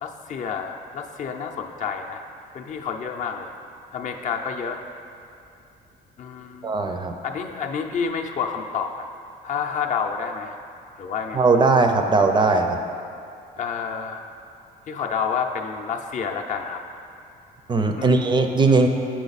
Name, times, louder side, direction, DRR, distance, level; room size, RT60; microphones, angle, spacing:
voice 1, 0.0-2.2 2.5-3.5 3.9-4.8 6.2-6.7 7.2-9.1 9.4-10.6 11.0-11.5 13.6-14.2 14.9-16.8 18.0-18.2, left 6 dB, 45° left, 3 dB, 0.5 m, -29 dB
voice 2, 6.6-7.1 11.3-12.8 17.7-18.9, right 3 dB, 25° right, 5 dB, 0.5 m, -19 dB
6.4 x 6.1 x 4.0 m, 2.5 s
cardioid pair, 110°, 17 cm